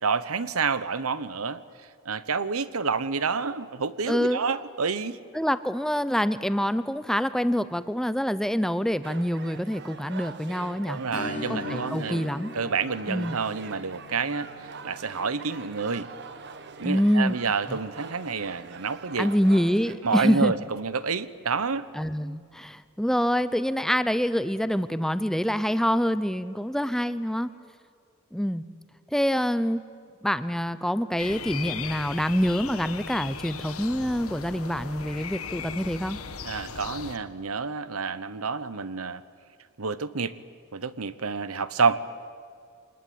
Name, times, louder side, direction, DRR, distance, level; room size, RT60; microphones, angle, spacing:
voice 1, 0.0-1.6 2.0-5.2 10.9-12.2 12.5-16.1 16.8-19.3 20.0-21.9 36.4-39.2 39.8-40.3 40.7-42.0, right 5 dB, 85° right, 15 dB, 1.0 m, -28 dB
voice 2, 4.1-4.4 5.3-11.0 11.5-12.5 13.1-13.4 16.8-17.4 17.7-17.8 19.2-20.5 21.9-27.5 28.3-28.6 29.1-29.8 30.2-36.2, equal, ahead, 13 dB, 0.7 m, -26 dB
sound 1, 9.0-20.0, right 5 dB, 55° right, 1.3 m, -43 dB
Strum, 11.1-20.3 20.6-20.7 23.3-23.4 23.9-24.0, left 2 dB, 40° left, 2.6 m, -43 dB
sound 2, 31.2-37.2, left 6 dB, 80° left, 1.4 m, -38 dB
25.5 x 20.0 x 9.4 m, 2.2 s
head